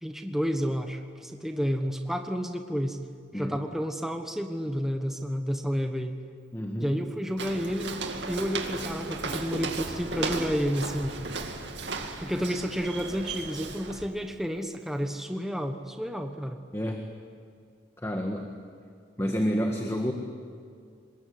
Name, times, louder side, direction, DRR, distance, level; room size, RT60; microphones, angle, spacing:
voice 1, 0.0-3.0 3.3-6.1 6.8-11.1 12.2-16.6, equal, ahead, 5 dB, 1.2 m, -30 dB
voice 2, 6.5-6.9 16.7-17.1 18.0-18.5 19.2-20.1, equal, 15° left, 3 dB, 1.6 m, -29 dB
Walk footsteps, 7.4-14.1, right 3 dB, 65° right, 2.4 m, -35 dB
25.5 x 21.0 x 10.0 m, 2.3 s
head